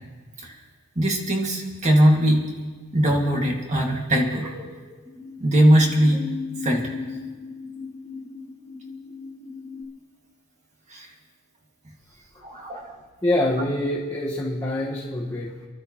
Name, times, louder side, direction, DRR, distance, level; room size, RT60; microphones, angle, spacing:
voice 1, 1.0-2.4 2.9-4.5 5.4-6.3 6.6-6.9 10.9-11.1 11.8-11.9 12.4-12.9, equal, 35° right, -1 dB, 2.1 m, -20 dB
sound 1, 2.0-2.5 4.3-5.3 5.7-9.8, left 4 dB, 15° right, 1.9 m, -37 dB
voice 2, 13.2-15.7, left 1 dB, 15° left, -6 dB, 1.5 m, -25 dB
28.5 x 12.0 x 3.1 m, 1.4 s
head